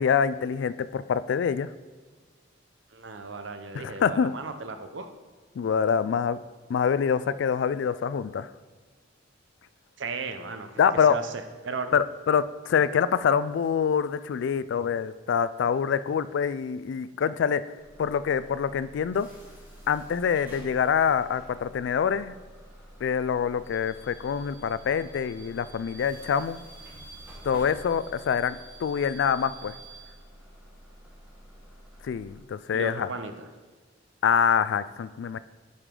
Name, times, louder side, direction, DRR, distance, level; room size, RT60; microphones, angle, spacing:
voice 1, 0.0-1.7 3.7-4.3 5.6-6.4 6.7-8.5 10.8-11.2 11.9-17.6 18.0-19.3 19.9-22.3 23.0-26.6 27.4-29.7 32.0-33.1 34.2-35.4, left 7 dB, 65° left, 15 dB, 0.3 m, -25 dB
voice 2, 2.9-5.1 10.0-10.7 11.1-11.9 32.7-33.5, right 4 dB, 70° right, 8 dB, 0.7 m, -35 dB
Bus / Alarm, 17.8-32.4, right 1 dB, 10° right, 2.0 m, -48 dB
9.5 x 5.0 x 3.7 m, 1.4 s
head